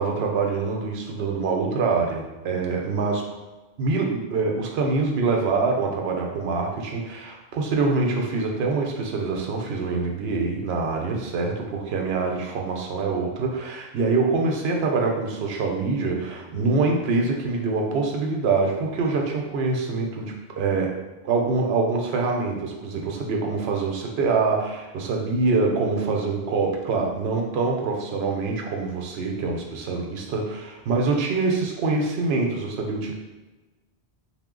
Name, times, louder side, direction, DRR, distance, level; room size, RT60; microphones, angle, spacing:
voice 1, 0.0-3.2 3.8-21.0 21.2-33.1, right 3 dB, 75° right, 1 dB, 0.8 m, -25 dB
2.7 x 2.0 x 3.6 m, 1.1 s
omnidirectional pair, 1.1 m